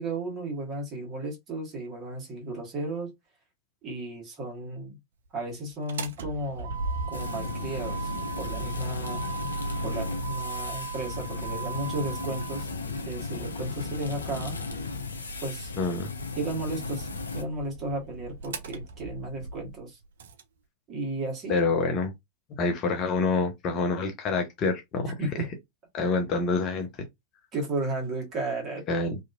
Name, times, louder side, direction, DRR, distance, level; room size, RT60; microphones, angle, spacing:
voice 1, 0.0-3.1 3.8-5.0 5.3-6.8 7.1-9.2 9.8-14.6 15.4-15.7 16.4-20.0 20.9-21.6 25.2-25.5 26.0-26.1 27.5-28.8, right 2 dB, 30° right, 1.4 m, -34 dB
Motor vehicle (road), 5.7-20.4, right 3 dB, 60° right, 0.4 m, -38 dB
sound 1, 7.1-17.4, left 4 dB, 75° left, 0.4 m, -36 dB
voice 2, 15.8-16.1 21.5-22.1 22.6-25.1 25.9-26.9 28.9-29.2, left 3 dB, 35° left, 0.7 m, -26 dB
2.8 x 2.5 x 2.4 m
figure-of-eight pair, 90°, 0 cm